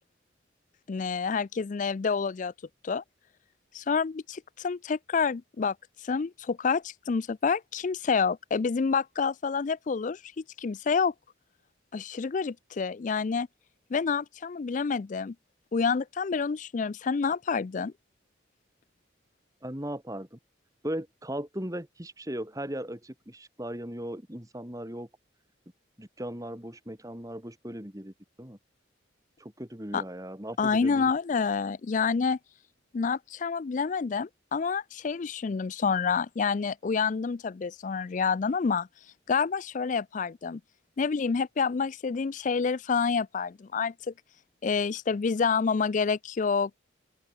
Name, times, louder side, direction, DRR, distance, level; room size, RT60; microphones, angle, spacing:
voice 1, 0.9-2.5 2.8-3.0 3.7-5.8 6.0-11.1 11.9-13.5 13.9-15.3 15.7-17.9 29.9-30.0 30.6-32.4 32.9-38.9 39.3-40.6 41.0-44.1 44.6-46.7, left 5 dB, 40° left, 0.4 m, -28 dB
voice 2, 19.6-20.4 20.8-25.1 26.0-28.6 29.4-31.1, right 1 dB, 15° right, 3.0 m, -37 dB
open air
head